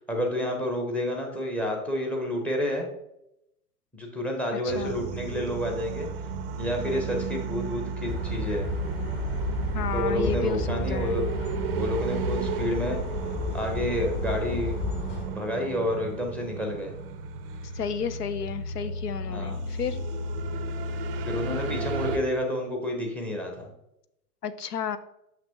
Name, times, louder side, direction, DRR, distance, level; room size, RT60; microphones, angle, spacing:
voice 1, 0.0-2.9 3.9-6.1 6.6-8.7 9.9-11.3 11.7-13.0 13.5-14.8 15.3-16.9 19.3-19.6 21.3-23.7, left 1 dB, 5° left, 3 dB, 0.6 m, -29 dB
sound 1, 4.7-22.2, right 4 dB, 40° right, 0.5 m, -34 dB
sound 2, 8.1-15.3, left 2 dB, 35° left, 1.3 m, -32 dB
voice 2, 9.7-11.2 17.7-20.0 24.4-25.0, left 7 dB, 75° left, 13 dB, 0.6 m, -32 dB
5.9 x 5.9 x 2.9 m, 0.83 s
figure-of-eight pair, 105°, 48 cm